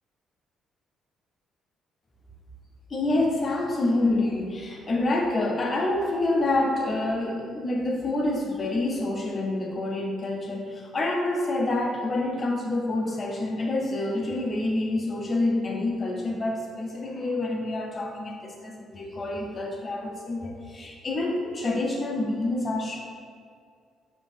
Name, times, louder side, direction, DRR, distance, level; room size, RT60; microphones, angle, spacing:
voice 1, 2.9-23.0, left 2 dB, 35° left, 1 dB, 0.7 m, -27 dB
4.6 x 2.9 x 3.6 m, 2.1 s
cardioid pair, 85°, 0 cm